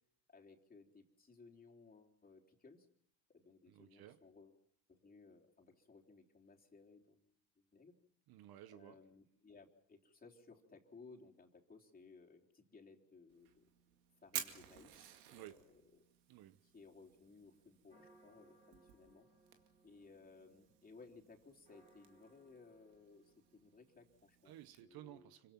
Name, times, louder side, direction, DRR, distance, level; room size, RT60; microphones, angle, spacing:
voice 1, 0.3-2.9 3.3-4.6 4.9-7.3 7.7-7.9 8.7-13.7 14.2-15.8 16.6-19.3 19.8-24.5 24.8-25.3, left 4 dB, 20° left, 3.5 m, -61 dB
voice 2, 3.7-4.2 8.3-9.0 15.3-15.7 16.3-16.6 24.4-25.5, right 13 dB, 55° right, 1.2 m, -56 dB
Fire, 13.3-24.8, right 11 dB, 90° right, 2.3 m, -54 dB
sound 1, 17.9-24.0, right 2 dB, 15° right, 4.5 m, -69 dB
26.5 x 24.5 x 6.0 m
supercardioid pair, 90°, 44 cm